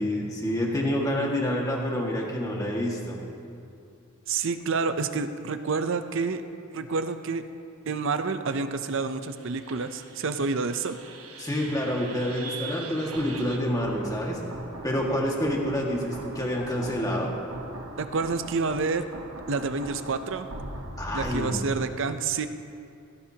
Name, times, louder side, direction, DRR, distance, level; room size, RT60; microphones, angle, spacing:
voice 1, 0.0-3.2 11.4-14.4 14.8-17.3 21.0-21.6, equal, 15° left, -2 dB, 1.8 m, -28 dB
voice 2, 4.3-6.4 6.7-7.4 7.8-11.0 18.0-19.1 19.5-20.5 21.1-22.5, right 4 dB, 60° right, 10 dB, 0.6 m, -28 dB
sound 1, 9.3-21.4, right 2 dB, 75° right, 1.2 m, -41 dB
17.5 x 16.0 x 2.9 m, 2.5 s
head